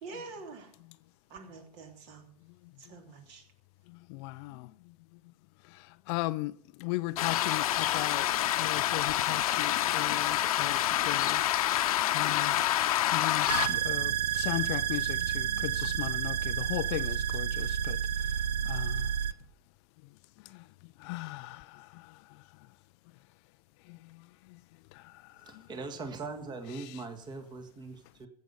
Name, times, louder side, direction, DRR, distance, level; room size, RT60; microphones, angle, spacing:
voice 1, 0.0-0.7 1.3-2.3 2.9-3.4, right 3 dB, 50° right, 3.3 m, -46 dB
voice 2, 6.1-6.5 6.8-7.6 7.9-8.2 8.6-9.7 9.9-10.2 10.6-10.8 11.1-11.2 12.1-12.5 13.1-13.4 13.9-14.1 14.5-15.0 15.8-16.3 16.7-17.5 17.9-18.0 18.7-18.8 21.1-21.3, left 20 dB, 40° left, 0.4 m, -34 dB
sound 1, 7.2-13.7, left 13 dB, 65° left, 0.9 m, -27 dB
sound 2, 13.5-19.3, right 9 dB, 80° right, 0.6 m, -30 dB
voice 3, 25.4-28.3, right 3 dB, 20° right, 1.6 m, -41 dB
14.5 x 8.3 x 5.5 m
hypercardioid pair, 105°, 20 cm